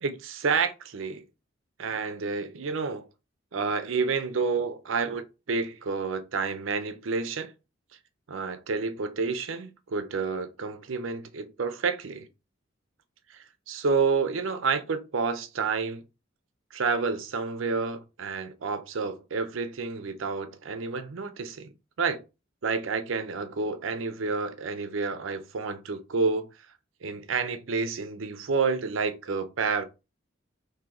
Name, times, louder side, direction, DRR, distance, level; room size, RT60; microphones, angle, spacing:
voice 1, 0.0-1.2 1.8-3.1 3.5-7.5 8.3-12.3 13.3-16.0 16.7-21.7 22.0-22.2 22.6-26.5 27.0-29.8, right 4 dB, 85° right, 0.6 m, -29 dB
2.9 x 2.7 x 3.8 m
head